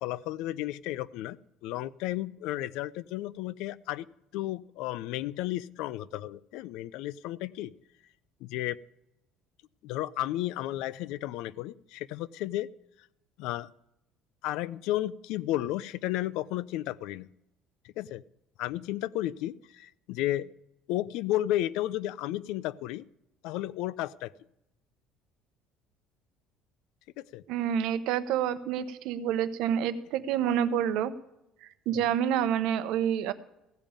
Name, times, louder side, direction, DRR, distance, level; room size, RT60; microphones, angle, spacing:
voice 1, 0.0-1.4 1.6-4.1 4.3-7.7 8.4-8.8 9.8-12.7 13.4-13.7 14.4-17.3 17.8-18.2 18.6-20.5 20.9-23.0 23.4-24.3 27.2-27.4, left 14 dB, 75° left, 20 dB, 0.4 m, -33 dB
voice 2, 27.5-31.1 31.6-33.3, right 9 dB, 70° right, 12 dB, 0.9 m, -28 dB
15.5 x 5.3 x 8.8 m, 0.85 s
cardioid pair, 160°, 0 cm